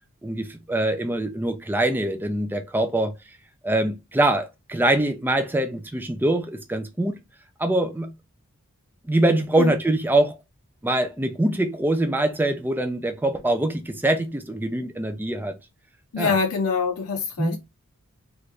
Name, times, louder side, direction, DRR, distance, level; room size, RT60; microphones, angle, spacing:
voice 1, 0.2-3.1 3.6-7.2 7.6-8.1 9.0-10.3 10.8-15.5 16.2-16.4 17.4-17.6, right 1 dB, 10° right, 0.4 m, -23 dB
voice 2, 16.1-17.6, left 5 dB, 80° left, 0.5 m, -24 dB
3.0 x 2.5 x 3.3 m
head